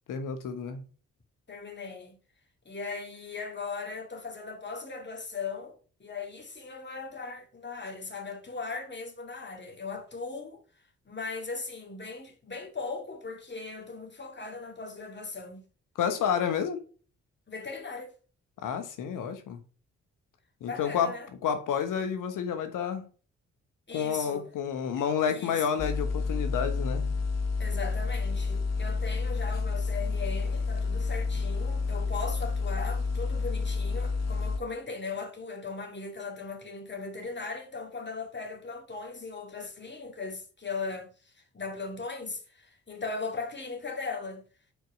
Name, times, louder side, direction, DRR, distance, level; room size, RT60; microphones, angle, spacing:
voice 1, 0.1-0.8 16.0-16.8 18.6-19.6 20.6-21.1 21.4-23.1 23.9-27.1, left 7 dB, 75° left, 1.1 m, -30 dB
voice 2, 1.5-2.2 2.7-10.6 11.1-15.7 17.5-18.1 20.6-21.3 23.9-24.5 25.0-25.6 27.6-44.5, left 4 dB, 35° left, 2.2 m, -38 dB
sound 1, 25.8-34.6, left 4 dB, 55° left, 1.0 m, -29 dB
5.2 x 4.5 x 5.2 m
supercardioid pair, 45°, 32 cm